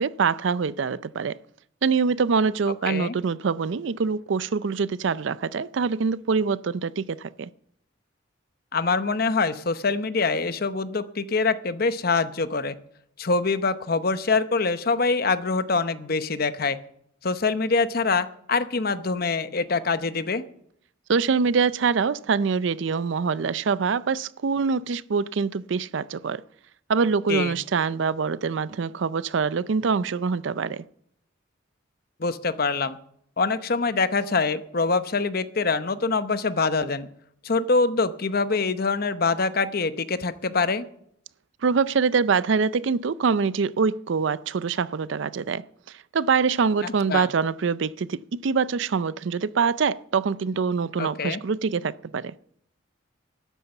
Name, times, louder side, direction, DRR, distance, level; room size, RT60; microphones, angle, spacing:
voice 1, 0.0-1.4 1.8-7.5 21.1-26.4 26.9-30.8 41.6-52.3, right 5 dB, 70° right, 0.5 m, -24 dB
voice 2, 8.7-12.7 13.2-16.8 17.2-20.4 27.3-27.6 32.2-33.0 33.4-37.1 37.4-40.8 46.8-47.3 51.0-51.4, left 4 dB, 50° left, 0.8 m, -24 dB
13.0 x 9.9 x 7.0 m
head